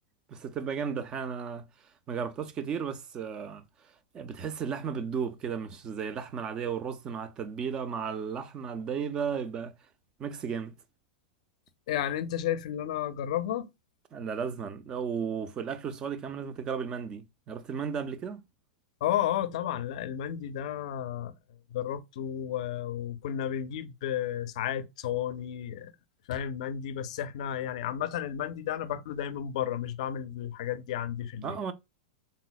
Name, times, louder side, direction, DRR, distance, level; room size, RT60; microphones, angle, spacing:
voice 1, 0.3-1.7 2.1-3.6 4.1-9.7 10.2-10.7 14.1-18.4 31.4-31.7, right 6 dB, 20° right, 0.3 m, -34 dB
voice 2, 11.9-13.7 19.0-21.3 21.7-25.9 26.3-31.6, left 10 dB, 55° left, 0.4 m, -32 dB
3.9 x 2.0 x 2.2 m
supercardioid pair, 165°, 4 cm